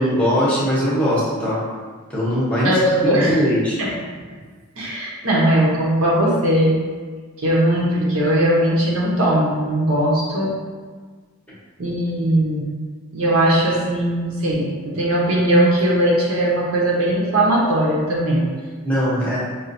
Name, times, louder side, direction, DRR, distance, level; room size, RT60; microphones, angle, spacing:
voice 1, 0.0-1.6 2.1-2.7 3.1-3.8 18.8-19.4, equal, 5° left, -8 dB, 0.8 m, -20 dB
voice 2, 2.6-3.4 3.8-3.9 4.8-6.8 7.4-10.6 11.8-12.7 13.1-18.4, right 1 dB, 70° right, -4 dB, 0.8 m, -19 dB
5.5 x 2.4 x 2.6 m, 1.5 s
head